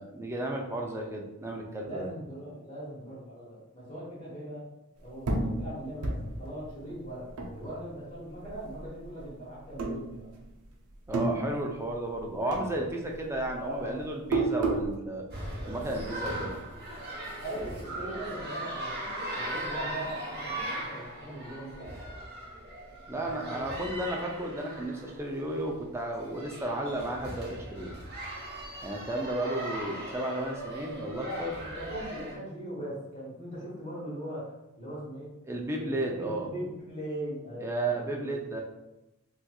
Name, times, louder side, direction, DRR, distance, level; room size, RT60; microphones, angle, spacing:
voice 1, 0.0-2.1 11.1-15.3 15.6-16.5 23.1-27.9 28.8-31.5 35.4-36.5 37.6-38.6, right 1 dB, 10° right, 0 dB, 0.3 m, -33 dB
voice 2, 1.8-4.7 5.0-7.3 7.5-10.3 13.6-14.0 17.4-22.1 23.1-23.8 29.0-29.7 31.1-34.4 34.8-38.4, right 1 dB, 30° left, -10 dB, 1.0 m, -40 dB
sound 1, 5.2-8.1 8.4-9.3 9.7-10.6 10.9-12.2 12.5-14.9, right 2 dB, 85° right, 0.6 m, -32 dB
sound 2, 15.3-32.4, right 1 dB, 45° right, 1.0 m, -39 dB
4.2 x 2.4 x 2.3 m, 0.92 s
head